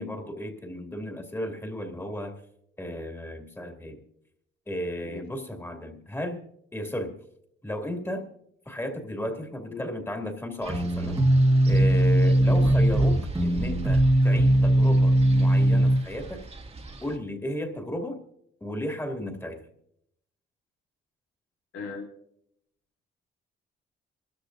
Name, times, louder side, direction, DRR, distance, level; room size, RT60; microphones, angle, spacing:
voice 1, 0.0-2.4 2.8-4.0 4.7-6.4 6.7-7.2 7.6-8.3 8.7-11.2 11.7-16.4 17.0-18.2 18.6-19.7, left 1 dB, 10° left, 3 dB, 2.4 m, -34 dB
Wind, 10.6-17.2, right 3 dB, 30° right, 1.8 m, -38 dB
sound 1, 10.7-16.0, right 1 dB, 15° right, 1.7 m, -20 dB
voice 2, 21.7-22.1, left 5 dB, 85° left, -2 dB, 2.3 m, -38 dB
25.5 x 13.5 x 2.6 m, 0.73 s
cardioid pair, 90°, 20 cm